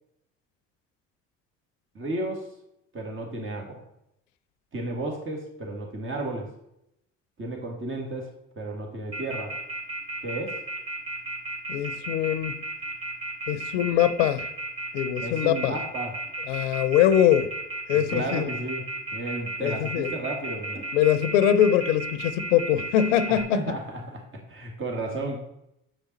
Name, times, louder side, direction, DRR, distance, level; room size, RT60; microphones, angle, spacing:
voice 1, 1.9-2.5 2.9-3.8 4.7-6.5 7.4-8.3 8.6-9.6 10.2-10.6 15.2-16.1 17.9-18.9 19.1-20.8 23.3-25.4, right 2 dB, 30° right, 2.1 m, -33 dB
Telephone, 9.1-23.4, right 2 dB, 15° right, 2.7 m, -33 dB
voice 2, 11.7-12.6 13.5-14.5 14.9-15.7 16.5-17.5 17.9-18.5 19.6-20.1 20.9-23.6, left 10 dB, 75° left, 0.7 m, -22 dB
7.8 x 5.0 x 4.1 m
hypercardioid pair, 65°, 38 cm